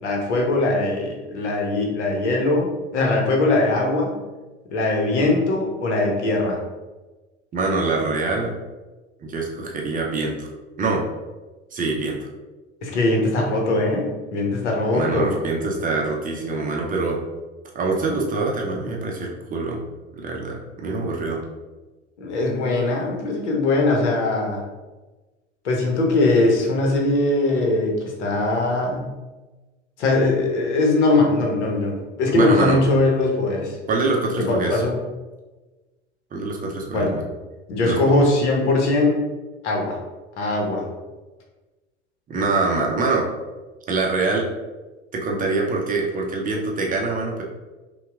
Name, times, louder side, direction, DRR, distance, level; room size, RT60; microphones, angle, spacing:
voice 1, 0.0-4.1 4.7-6.6 12.8-15.4 22.2-24.6 25.6-29.1 30.0-33.8 34.4-35.0 36.9-37.2 37.7-39.2 39.6-40.0 40.4-40.8, left 2 dB, 70° left, 0 dB, 1.0 m, -21 dB
voice 2, 7.5-8.5 9.2-10.5 10.8-11.0 11.7-12.3 14.9-17.2 17.7-19.8 20.1-21.4 32.3-32.8 33.9-34.8 36.3-37.2 37.8-38.0 42.3-43.3 43.9-44.5 45.1-47.4, right 3 dB, 25° right, -1 dB, 0.6 m, -24 dB
5.5 x 2.3 x 2.3 m, 1.2 s
figure-of-eight pair, 75°, 36 cm